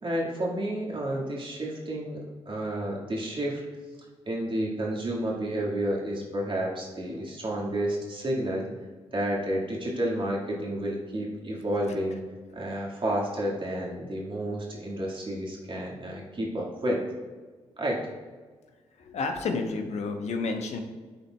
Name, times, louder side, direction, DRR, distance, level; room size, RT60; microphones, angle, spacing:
voice 1, 0.0-3.6 4.2-8.7 9.1-12.2 12.5-17.0 17.8-18.0, right 1 dB, 45° right, -3 dB, 1.8 m, -30 dB
voice 2, 19.0-20.8, left 3 dB, 70° left, 5 dB, 0.9 m, -30 dB
11.0 x 4.1 x 2.3 m, 1.5 s
hypercardioid pair, 40°, 12 cm